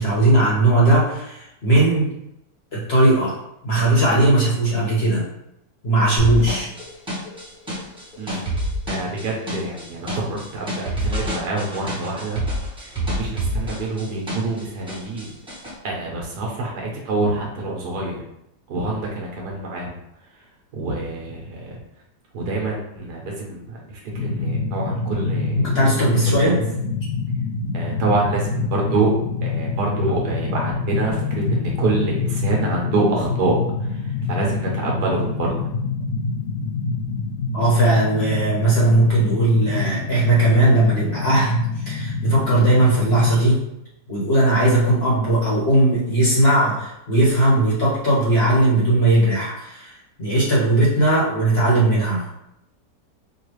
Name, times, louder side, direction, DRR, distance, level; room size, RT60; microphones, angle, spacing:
voice 1, 0.0-2.1 2.7-3.3 3.6-5.2 5.8-6.7 25.6-26.6 37.5-43.6 44.1-52.2, right 1 dB, 40° left, -6 dB, 1.3 m, -18 dB
sound 1, 6.2-14.6 14.9-15.7, right 1 dB, 5° right, 1.0 m, -27 dB
voice 2, 8.9-12.4 12.8-15.3 15.8-18.2 18.7-20.0 20.7-21.8 22.3-25.7 26.3-26.5 27.7-29.1 29.4-35.7, right 2 dB, 70° right, -2 dB, 1.5 m, -26 dB
sound 2, 24.1-43.4, left 4 dB, 85° left, 0.6 m, -26 dB
5.1 x 2.4 x 3.2 m, 0.81 s
omnidirectional pair, 1.8 m